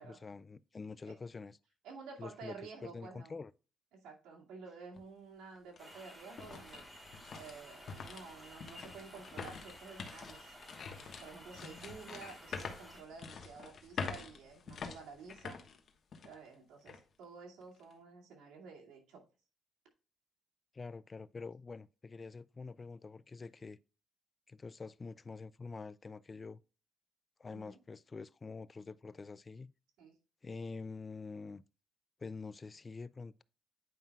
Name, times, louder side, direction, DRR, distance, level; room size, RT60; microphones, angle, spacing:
voice 1, 0.0-1.6 2.2-2.6 2.8-3.5 20.7-23.8 24.5-26.6 27.4-29.7 30.4-31.6 32.2-33.4, left 4 dB, 30° left, 0.3 m, -46 dB
voice 2, 1.8-3.3 3.9-6.8 7.3-10.5 11.0-15.6 16.2-19.2 27.5-27.8 30.0-30.1, right 5 dB, 90° right, 2.3 m, -51 dB
sound 1, 4.9-5.0 5.6-16.5 16.9-17.0 17.6-17.9, left 5 dB, 55° left, 1.2 m, -46 dB
sound 2, 5.8-13.0, equal, 15° right, 3.4 m, -54 dB
9.3 x 5.4 x 2.3 m
cardioid pair, 90°, 0 cm